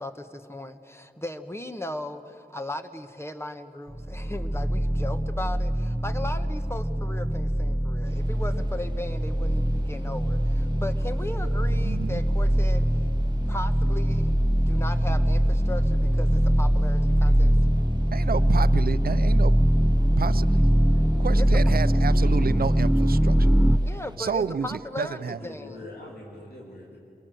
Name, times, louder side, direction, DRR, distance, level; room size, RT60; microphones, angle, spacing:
voice 1, 0.0-12.9 13.5-14.3 14.7-17.5 21.4-21.5 23.8-25.9, left 1 dB, 15° left, 8 dB, 1.4 m, -37 dB
sound 1, 3.9-23.8, equal, 5° right, 0.5 m, -22 dB
sound 2, 8.0-24.2, right 2 dB, 30° right, 1.1 m, -42 dB
voice 2, 11.7-12.2 18.1-19.6 20.2-20.7 21.2-23.5 24.2-25.4, right 6 dB, 75° right, 15 dB, 0.5 m, -30 dB
voice 3, 25.2-27.0, left 2 dB, 90° left, -3 dB, 3.3 m, -44 dB
27.5 x 22.5 x 7.8 m, 2.5 s
wide cardioid pair, 65°, 16 cm